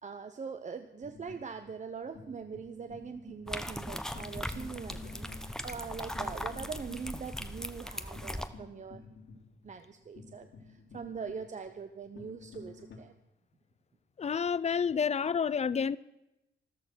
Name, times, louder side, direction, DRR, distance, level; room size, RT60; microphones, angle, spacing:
voice 1, 0.0-9.0 9.6-13.1, right 5 dB, 40° right, 0.8 m, -42 dB
sound 1, 1.0-13.0, left 4 dB, 75° left, 3.3 m, -52 dB
sound 2, 3.5-8.5, equal, 5° left, 0.9 m, -39 dB
voice 2, 14.2-16.0, left 6 dB, 35° left, 0.5 m, -29 dB
14.0 x 13.0 x 6.2 m
wide cardioid pair, 140°, 19 cm